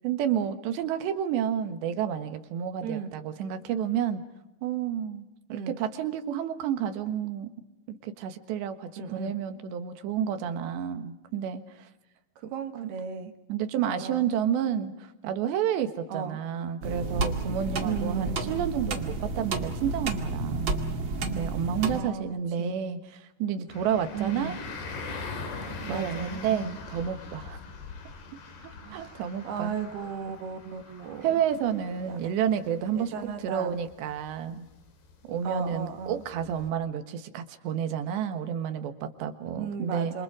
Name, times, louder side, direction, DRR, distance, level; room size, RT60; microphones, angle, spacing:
voice 1, 0.0-4.2 4.6-7.5 7.9-11.9 12.8-12.9 13.5-20.9 21.2-24.5 25.9-27.6 28.6-29.8 31.2-34.7 35.3-40.2, right 8 dB, 85° right, 8 dB, 3.7 m, -30 dB
voice 2, 2.8-3.1 5.5-5.8 9.0-9.4 12.4-13.3 13.8-14.3 16.1-16.4 17.8-18.4 21.9-22.3 22.6-22.7 24.1-24.6 25.8-26.8 28.8-31.4 32.1-32.2 32.9-33.8 35.4-36.2 39.6-40.2, right 6 dB, 70° right, 7 dB, 3.5 m, -35 dB
sound 1, 16.8-22.0, right 3 dB, 40° right, 2.0 m, -31 dB
sound 2, 23.7-36.7, left 4 dB, 65° left, 5.0 m, -42 dB
27.5 x 27.5 x 5.0 m, 0.94 s
omnidirectional pair, 4.9 m